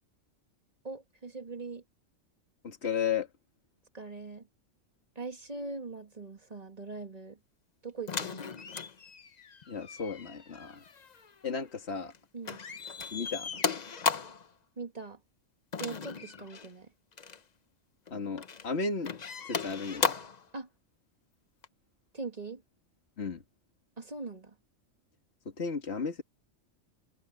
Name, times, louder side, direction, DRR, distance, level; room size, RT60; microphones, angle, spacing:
voice 1, 0.8-1.8 3.9-4.5 5.2-7.4 7.8-8.6 12.3-12.6 14.8-15.2 15.8-16.9 20.5-20.7 22.1-22.6 24.0-24.6, right 3 dB, 30° right, 2.1 m, -41 dB
voice 2, 2.6-3.3 9.7-10.8 11.4-12.1 13.1-13.5 18.1-19.1 19.5-20.1 23.2-23.4 25.6-26.2, left 5 dB, 60° left, 2.3 m, -34 dB
sound 1, 8.1-12.2 12.5-14.5 15.7-16.7 17.1-17.4 18.1-18.7 19.0-20.5 21.6-21.7, left 5 dB, 40° left, 0.8 m, -36 dB
omnidirectional pair, 1.3 m